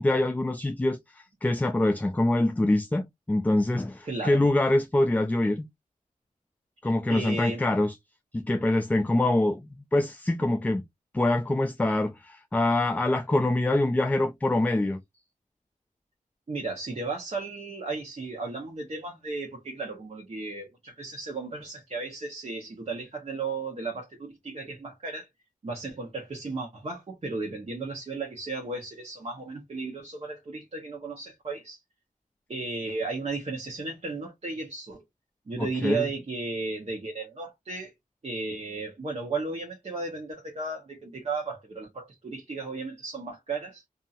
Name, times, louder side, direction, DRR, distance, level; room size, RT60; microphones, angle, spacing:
voice 1, 0.0-5.7 6.8-7.9 8.3-10.8 11.1-15.0 35.6-36.1, left 1 dB, 10° left, 0.3 m, -25 dB
voice 2, 4.0-4.4 6.8-7.6 16.5-25.3 25.6-31.8 32.5-35.0 35.5-37.9 38.2-43.8, right 3 dB, 45° right, 1.0 m, -35 dB
2.7 x 2.6 x 2.4 m
wide cardioid pair, 90°, 14 cm